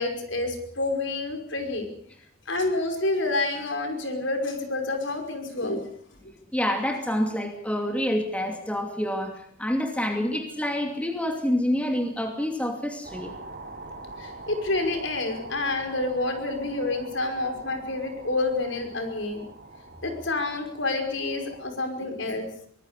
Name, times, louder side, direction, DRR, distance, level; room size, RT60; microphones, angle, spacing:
voice 1, 0.0-1.9 2.5-5.8 14.2-19.4 20.0-22.4, left 2 dB, 65° left, 5 dB, 5.4 m, -28 dB
voice 2, 6.5-13.3, left 1 dB, 5° left, 4 dB, 2.6 m, -27 dB
sound 1, 13.0-21.7, right 2 dB, 45° right, 3.6 m, -44 dB
24.0 x 19.5 x 6.7 m, 0.65 s
head